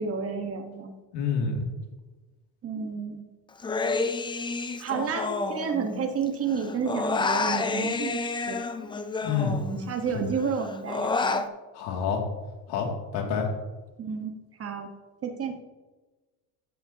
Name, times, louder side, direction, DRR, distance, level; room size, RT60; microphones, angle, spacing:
voice 1, 0.0-1.0 2.6-3.3 4.8-8.6 9.4-11.4 14.0-14.3 14.6-14.9 15.2-15.6, right 6 dB, 35° right, 5 dB, 1.2 m, -31 dB
voice 2, 1.1-1.7 9.2-9.6 10.1-10.2 11.7-12.2 12.7-13.5, left 6 dB, 75° left, 1 dB, 2.4 m, -28 dB
Human voice, 3.6-6.2 6.5-10.0 10.4-11.5, left 4 dB, 10° left, 0.4 m, -29 dB
13.5 x 10.0 x 2.8 m, 1.2 s
cardioid pair, 135°, 42 cm